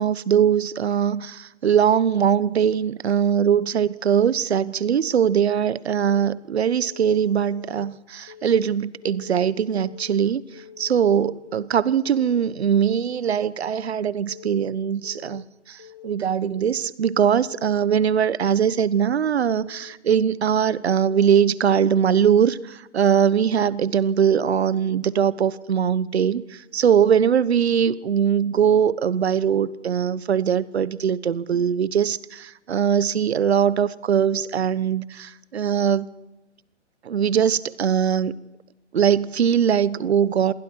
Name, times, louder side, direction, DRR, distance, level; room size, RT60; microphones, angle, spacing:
voice 1, 0.0-10.4 10.8-36.1 37.0-38.3 38.9-40.5, right 8 dB, 60° right, 18 dB, 1.1 m, -21 dB
Keyboard (musical) / Alarm, 6.0-6.4 6.8-7.1 7.5-7.9 8.3-8.7 9.0-9.4 9.8-10.2 10.5-10.9 11.3-11.7 12.0-12.4 12.8-13.2 13.5-13.9 14.3-14.7 15.0-15.4 15.8-16.2 16.5-16.9 17.3-17.7 18.0-18.4 18.8-19.2 19.5-19.9 20.3-20.7 21.0-21.4 21.8-22.2, left 10 dB, 25° left, 0.6 m, -45 dB
28.0 x 21.5 x 4.7 m, 0.99 s
hypercardioid pair, 160°, 36 cm